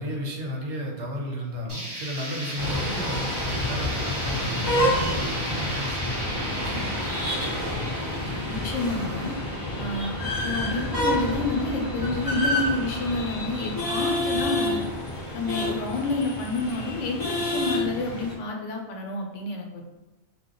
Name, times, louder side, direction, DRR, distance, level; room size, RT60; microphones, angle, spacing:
voice 1, 0.0-7.5 9.3-9.5, equal, 75° right, 0 dB, 1.0 m, -34 dB
sound 1, 1.7-11.5, right 1 dB, 30° right, 0.6 m, -35 dB
sound 2, 2.6-18.3, left 1 dB, 25° left, 0.6 m, -29 dB
voice 2, 8.5-9.3 9.8-14.9 15.3-19.8, left 3 dB, 85° left, 1 dB, 1.0 m, -29 dB
2.8 x 2.2 x 3.6 m, 1.0 s
omnidirectional pair, 1.2 m